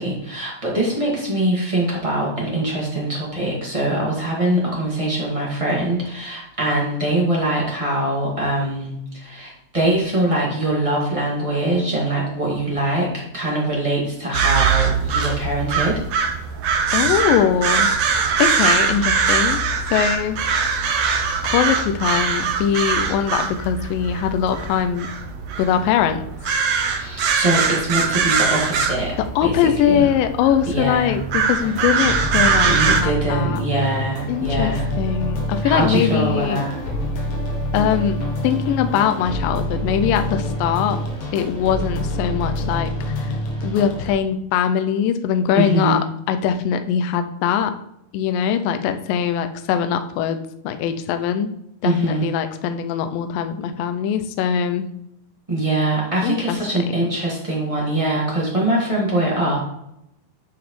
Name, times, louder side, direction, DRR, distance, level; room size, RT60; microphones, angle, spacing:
voice 1, 0.0-13.1 13.3-16.0 26.9-29.2 29.4-30.1 30.7-31.1 32.6-34.9 35.6-36.7 45.5-46.0 51.8-52.3 55.5-59.6, right 1 dB, 25° right, -5 dB, 0.6 m, -23 dB
sound 1, 14.3-33.0, right 6 dB, 80° right, 1.4 m, -22 dB
voice 2, 16.9-18.0 18.4-19.6 19.9-20.4 21.4-25.1 25.6-26.2 29.4-33.6 34.3-36.6 37.7-41.0 41.3-43.3 43.6-46.0 46.3-47.8 48.1-50.4 50.6-51.5 51.8-54.8 56.2-56.6, left 8 dB, 80° left, 8 dB, 2.2 m, -21 dB
sound 2, 31.5-44.1, left 1 dB, 60° left, 1.6 m, -26 dB
9.4 x 5.8 x 3.1 m, 0.80 s
omnidirectional pair, 4.3 m